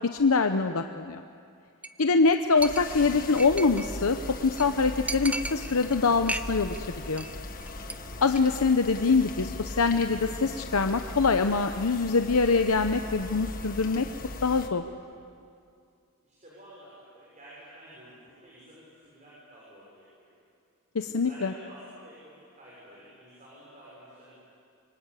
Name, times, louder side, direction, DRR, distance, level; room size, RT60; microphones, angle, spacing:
voice 1, 0.1-1.2 2.0-4.2 4.4-7.2 8.2-14.1 14.4-14.8 20.9-21.5, left 4 dB, 90° left, 7 dB, 0.8 m, -24 dB
Chink clink, 1.8-2.0 2.3-2.4 2.6-3.9 4.3-4.4 4.6-4.7 5.1-5.9 6.2-6.8 7.0-7.3 7.6-7.9 8.3-8.4, right 2 dB, 5° right, 0.5 m, -35 dB
sound 1, 2.6-14.7, left 2 dB, 40° left, 1.6 m, -39 dB
voice 2, 16.2-20.4 21.1-24.4, equal, 35° right, -6 dB, 6.4 m, -50 dB
27.0 x 23.5 x 8.3 m, 2.4 s
head